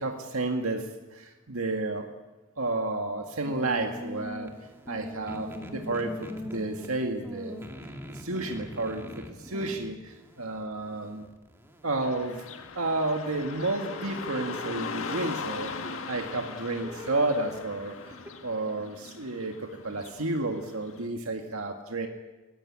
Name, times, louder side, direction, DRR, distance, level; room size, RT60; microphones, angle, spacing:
voice 1, 0.0-2.1 2.6-4.5 4.9-7.6 8.1-11.3 11.8-12.4 12.8-18.0 18.4-22.1, right 2 dB, 85° right, 4 dB, 1.9 m, -31 dB
sound 1, 3.4-18.3, equal, 10° right, 2.1 m, -43 dB
Car passing by / Traffic noise roadway noise, 12.0-21.0, left 4 dB, 75° left, 1.6 m, -40 dB
22.5 x 18.0 x 8.7 m, 1.1 s
head